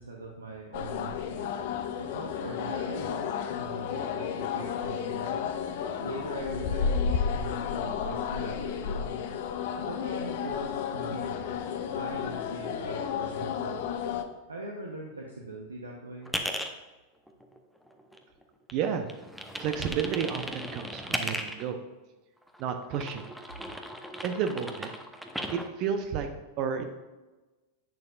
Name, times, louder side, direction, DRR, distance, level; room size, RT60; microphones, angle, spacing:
voice 1, 0.0-1.5 2.0-5.6 6.0-9.3 9.7-13.9 14.5-16.3, right 2 dB, 75° right, 0 dB, 0.9 m, -41 dB
sound 1, 0.7-14.2, left 7 dB, 50° left, 0.7 m, -32 dB
sound 2, 16.2-16.7 17.3-18.4 18.7-21.7 22.5-25.7, equal, ahead, 0.8 m, -36 dB
voice 2, 18.7-19.1 19.6-21.8 22.6-23.2 24.2-24.9 25.5-26.3 26.6-26.8, right 7 dB, 40° right, 6 dB, 0.7 m, -31 dB
10.5 x 8.5 x 2.4 m, 1.1 s
figure-of-eight pair, 90°, 0 cm